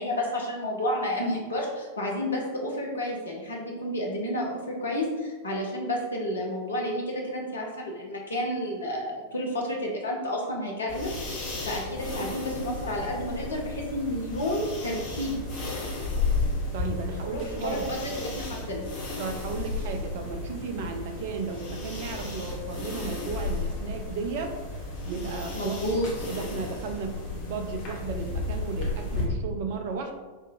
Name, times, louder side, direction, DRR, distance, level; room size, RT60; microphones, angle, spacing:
voice 1, 0.0-11.1 11.6-15.3 17.3-18.8 25.5-26.1, left 1 dB, 70° left, -1 dB, 0.9 m, -31 dB
sound 1, 10.9-29.3, left 3 dB, 40° left, 1.0 m, -33 dB
voice 2, 16.7-17.9 19.2-24.6 25.0-25.8 26.3-30.1, right 4 dB, 50° right, 4 dB, 0.5 m, -34 dB
3.6 x 2.4 x 4.5 m, 1.3 s
figure-of-eight pair, 90°, 0 cm